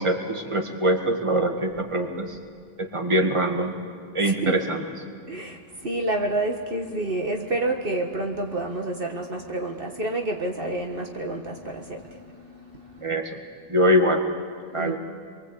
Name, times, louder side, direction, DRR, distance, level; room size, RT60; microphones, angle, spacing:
voice 1, 0.0-2.4 2.8-3.7 4.1-4.8 13.0-13.4 13.7-14.2 14.7-15.0, equal, 30° right, 3 dB, 2.0 m, -23 dB
voice 2, 4.2-4.6 5.3-13.2 14.8-15.0, right 2 dB, 60° right, 2 dB, 1.8 m, -29 dB
27.0 x 23.5 x 8.3 m, 2.1 s
omnidirectional pair, 1.1 m